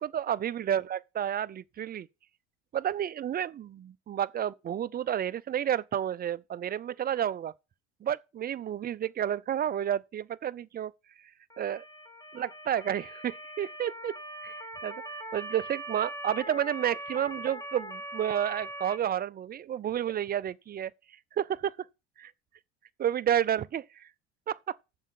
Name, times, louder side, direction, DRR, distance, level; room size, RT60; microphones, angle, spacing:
voice 1, 0.0-2.1 2.7-7.5 8.0-10.9 11.6-11.8 12.3-14.1 14.4-14.6 14.8-14.9 15.3-20.9 21.4-21.7 22.2-22.3 23.0-23.8 24.5-24.7, right 10 dB, 25° right, 0.5 m, -30 dB
Motor vehicle (road) / Siren, 11.5-19.0, right 1 dB, 10° left, 1.3 m, -41 dB
7.3 x 5.5 x 6.8 m
hypercardioid pair, 70°, 36 cm